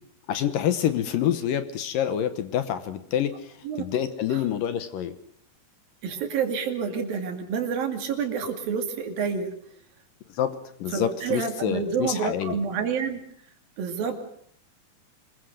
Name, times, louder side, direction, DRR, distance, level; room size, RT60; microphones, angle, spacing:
voice 1, 0.3-5.2 10.3-10.5 10.8-12.6, left 10 dB, 70° left, 11 dB, 2.5 m, -27 dB
voice 2, 6.0-9.5 10.9-13.2 13.8-14.2, right 6 dB, 65° right, 5 dB, 4.1 m, -28 dB
26.0 x 21.5 x 6.5 m, 0.63 s
omnidirectional pair, 4.6 m